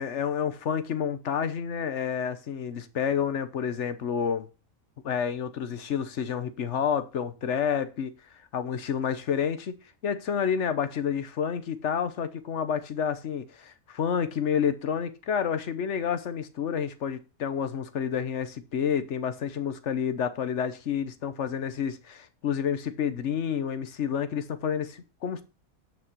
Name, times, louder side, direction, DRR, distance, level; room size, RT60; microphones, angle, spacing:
voice 1, 0.0-4.5 5.0-8.1 8.5-9.8 10.0-25.4, left 7 dB, 55° left, 1.2 m, -29 dB
9.1 x 6.3 x 4.5 m
omnidirectional pair, 1.5 m